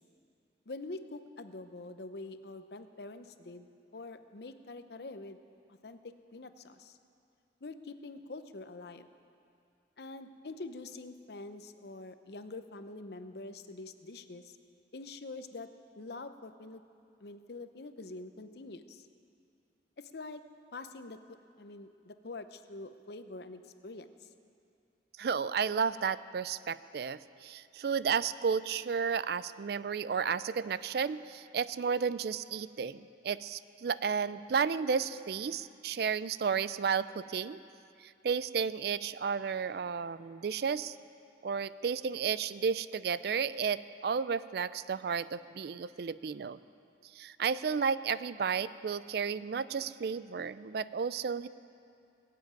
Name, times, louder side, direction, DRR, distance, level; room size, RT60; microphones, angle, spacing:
voice 1, 0.7-3.7 3.9-5.4 5.8-6.0 6.3-7.0 7.6-9.1 10.0-14.6 14.9-15.7 16.0-16.8 17.2-19.1 20.0-20.4 20.7-21.2 21.6-24.3, left 2 dB, 60° left, 10 dB, 0.7 m, -45 dB
voice 2, 25.2-37.6 38.2-41.0 41.4-46.6 47.2-51.5, right 6 dB, 60° right, 16 dB, 0.4 m, -32 dB
19.5 x 7.7 x 9.2 m, 2.5 s
head